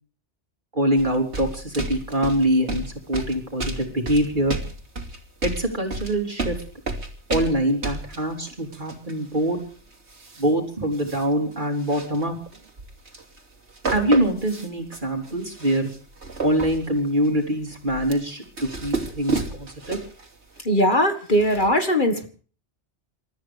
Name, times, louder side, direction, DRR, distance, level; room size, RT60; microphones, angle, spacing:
voice 1, 0.7-4.6 5.4-6.6 7.3-9.6 10.4-12.3 13.9-15.9 16.4-20.0, right 1 dB, 45° right, 1 dB, 3.8 m, -24 dB
sound 1, 1.0-10.5 10.9-11.3 11.5-13.4 13.7-20.3 20.6-20.7, right 3 dB, 80° right, 3.0 m, -32 dB
voice 2, 20.7-22.3, equal, 45° left, 6 dB, 1.8 m, -20 dB
28.5 x 14.0 x 3.4 m, 0.40 s
omnidirectional pair, 1.2 m